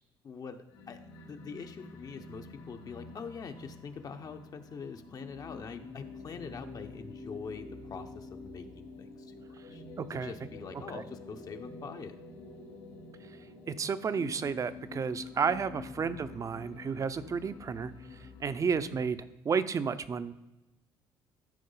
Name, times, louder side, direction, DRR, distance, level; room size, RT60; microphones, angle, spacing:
voice 1, 0.2-9.3 9.7-9.8 10.1-12.2 16.0-16.1 18.9-19.1, left 5 dB, 45° left, 6 dB, 0.8 m, -44 dB
sound 1, 0.6-19.3, left 3 dB, 90° left, 3.0 m, -48 dB
voice 2, 10.0-10.3 13.7-17.9 18.4-19.2 19.4-20.3, right 6 dB, 40° right, 14 dB, 0.7 m, -31 dB
14.0 x 4.7 x 4.0 m, 1.0 s
supercardioid pair, 80°, 9 cm